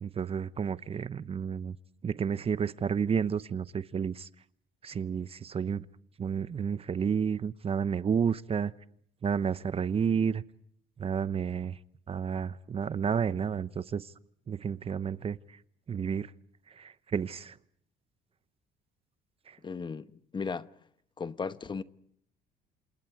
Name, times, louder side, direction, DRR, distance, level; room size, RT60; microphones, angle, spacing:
voice 1, 0.0-1.7 2.0-4.3 4.8-5.8 6.2-8.7 9.2-10.4 11.0-11.7 12.1-14.0 14.5-15.4 15.9-16.3 16.8-17.5, right 7 dB, 35° right, 0.9 m, -31 dB
voice 2, 19.6-20.1 20.3-20.7 21.2-21.8, left 5 dB, 30° left, 1.1 m, -35 dB
28.5 x 27.5 x 4.9 m
cardioid pair, 110°, 17 cm